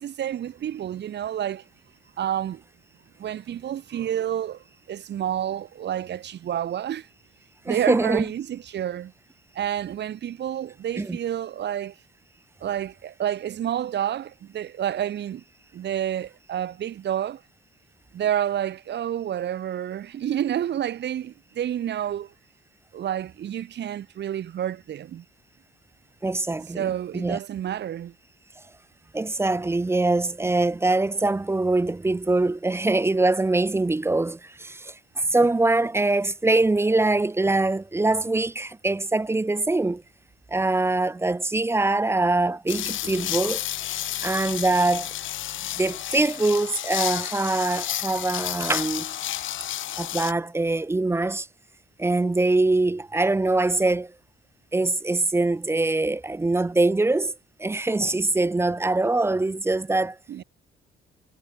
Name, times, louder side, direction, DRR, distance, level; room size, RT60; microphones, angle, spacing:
voice 1, 0.0-1.6 2.2-2.6 3.2-7.1 7.7-9.1 9.5-11.9 12.6-15.4 15.7-17.4 18.1-22.3 22.9-25.2 26.7-28.1 60.3-60.4, right 10 dB, 60° right, 1.4 m, -29 dB
voice 2, 7.7-8.3 11.0-11.2 26.2-27.4 29.1-40.0 40.5-43.6 44.2-45.1 45.8-49.2 50.0-51.5 52.0-54.1 54.7-57.3 57.6-60.2, right 2 dB, 10° right, 0.5 m, -23 dB
sound 1, 42.7-50.3, left 13 dB, 75° left, 2.0 m, -31 dB
cardioid pair, 90°, 20 cm